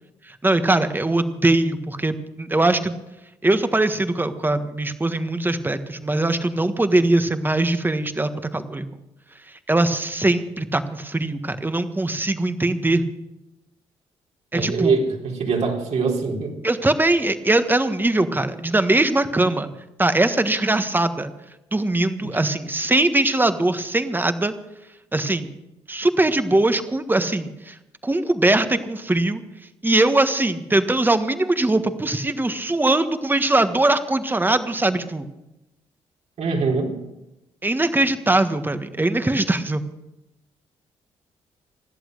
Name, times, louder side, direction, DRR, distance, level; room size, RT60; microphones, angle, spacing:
voice 1, 0.4-3.0 3.4-8.9 9.7-13.0 14.5-15.0 16.6-19.7 20.0-21.3 21.7-24.5 25.1-25.5 25.9-27.7 28.0-29.4 29.8-35.3 37.6-39.8, right 2 dB, 15° right, 10 dB, 1.5 m, -21 dB
voice 2, 14.5-16.5 22.2-22.3 36.4-36.9, right 4 dB, 65° right, 0 dB, 4.1 m, -23 dB
17.0 x 11.5 x 6.6 m, 0.94 s
supercardioid pair, 70°, 12 cm